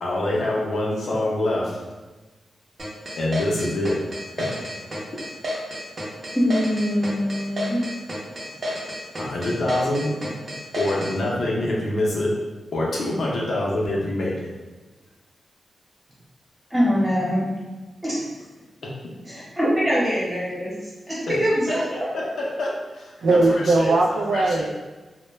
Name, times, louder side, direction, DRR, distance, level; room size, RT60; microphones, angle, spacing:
voice 1, 0.0-1.8 3.2-4.0 4.4-4.8 9.2-10.1 10.8-12.3 12.7-14.5 18.8-18.9 21.3-21.4 21.7-24.0 24.3-24.7, left 1 dB, 70° left, -3 dB, 0.6 m, -26 dB
sound 1, 2.8-11.1, equal, 45° right, 0.6 m, -30 dB
voice 2, 6.3-7.8 16.7-17.5 18.0-18.2 19.3-20.7 21.1-21.8, equal, 15° right, -8 dB, 1.0 m, -23 dB
voice 3, 23.2-24.7, right 2 dB, 85° right, 0 dB, 0.3 m, -19 dB
2.1 x 2.1 x 3.1 m, 1.2 s
wide cardioid pair, 120°, 0 cm